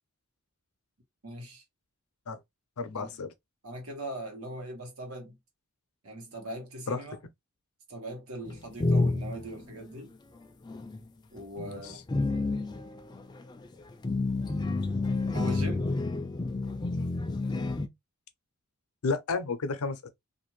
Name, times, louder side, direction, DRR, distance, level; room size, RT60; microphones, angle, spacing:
voice 1, 1.2-1.6 2.9-3.2 3.6-5.4 6.0-7.2 7.9-10.1 11.3-12.0 15.3-15.9, equal, 90° right, 1.3 m, -40 dB
voice 2, 2.8-3.3 6.9-7.0 11.6-11.9 19.0-20.1, left 4 dB, 90° left, 0.6 m, -32 dB
sound 1, 8.5-9.6 10.7-11.0 11.4-17.9, left 2 dB, 20° left, 0.3 m, -29 dB
2.6 x 2.5 x 3.0 m
head